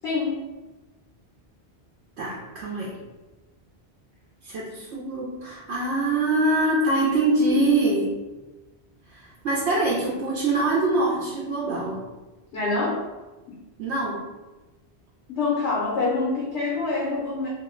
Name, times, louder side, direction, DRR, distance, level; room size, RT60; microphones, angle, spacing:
voice 1, 0.0-0.4 12.5-13.0 13.5-13.6 15.3-17.5, left 3 dB, 90° left, -6 dB, 1.1 m, -26 dB
voice 2, 2.2-3.0 4.4-8.1 9.1-12.0 13.8-14.2, right 2 dB, 90° right, -5 dB, 0.9 m, -24 dB
2.7 x 2.1 x 3.7 m, 1.1 s
omnidirectional pair, 1.1 m